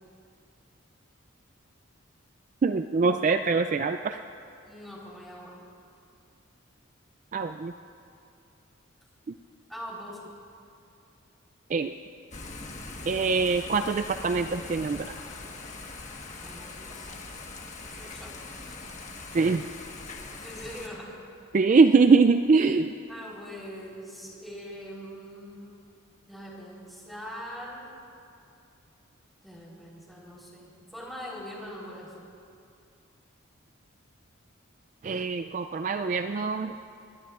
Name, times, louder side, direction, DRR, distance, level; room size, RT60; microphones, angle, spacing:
voice 1, 2.6-4.2 7.3-7.7 11.7-11.9 13.1-15.1 19.3-19.7 21.5-22.9 35.0-36.7, right 4 dB, 40° right, 8 dB, 0.3 m, -23 dB
voice 2, 4.6-5.6 9.7-10.2 16.4-17.4 17.8-18.3 18.6-18.8 20.4-21.2 23.1-25.8 26.2-27.9 29.4-32.1, equal, ahead, -5 dB, 3.8 m, -42 dB
Thunder / Rain, 12.3-20.9, left 3 dB, 35° left, 1.4 m, -41 dB
25.0 x 21.5 x 2.5 m, 2.5 s
head